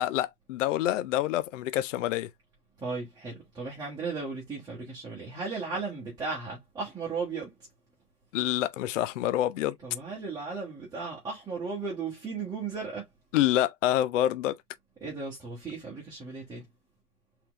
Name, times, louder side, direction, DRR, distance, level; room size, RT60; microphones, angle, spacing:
voice 1, 0.0-2.3 8.3-9.8 13.3-14.6, left 13 dB, 55° left, 0.6 m, -27 dB
voice 2, 2.8-7.5 9.8-13.1 15.0-16.6, right 4 dB, 10° right, 1.4 m, -36 dB
4.4 x 3.9 x 3.0 m
hypercardioid pair, 140°, 47 cm